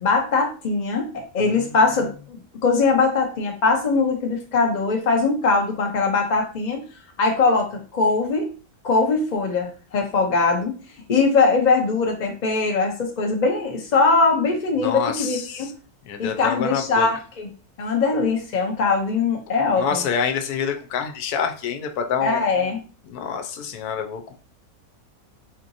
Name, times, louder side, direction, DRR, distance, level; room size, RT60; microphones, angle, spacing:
voice 1, 0.0-6.9 7.2-7.7 7.9-8.5 8.8-10.7 11.1-15.7 16.2-17.5 17.8-20.0 22.2-22.8, left 4 dB, 55° left, 1 dB, 0.5 m, -21 dB
voice 2, 14.8-15.7 16.1-17.1 19.8-22.5 23.0-24.3, left 7 dB, 90° left, 5 dB, 1.2 m, -27 dB
4.5 x 2.9 x 2.5 m, 0.37 s
omnidirectional pair, 1.6 m